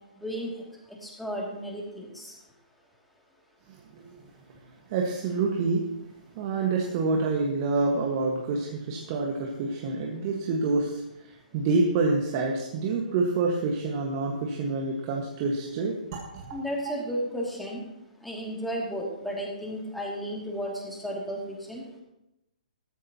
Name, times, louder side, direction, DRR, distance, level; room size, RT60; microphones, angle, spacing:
voice 1, 0.2-0.5 1.0-2.3 16.5-17.8 18.2-21.8, equal, ahead, -3 dB, 2.7 m, -33 dB
voice 2, 4.9-5.8 6.3-16.6, right 3 dB, 35° right, 0 dB, 1.7 m, -27 dB
14.5 x 13.5 x 3.0 m, 0.89 s
hypercardioid pair, 150°, 4 cm